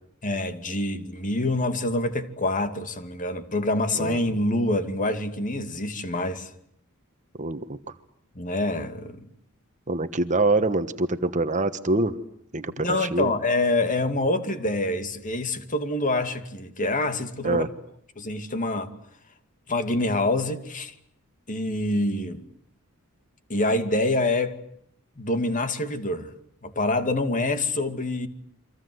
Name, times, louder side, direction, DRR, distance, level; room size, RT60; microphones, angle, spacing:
voice 1, 0.2-6.5 8.3-9.3 12.8-17.7 18.2-18.9 19.7-20.9 21.5-22.5 23.5-24.6 25.2-26.3 26.6-28.3, left 2 dB, 35° left, 2.4 m, -26 dB
voice 2, 7.4-7.8 9.9-12.1 12.5-13.3 17.4-17.7, right 2 dB, 35° right, 1.3 m, -25 dB
29.5 x 25.0 x 7.9 m
head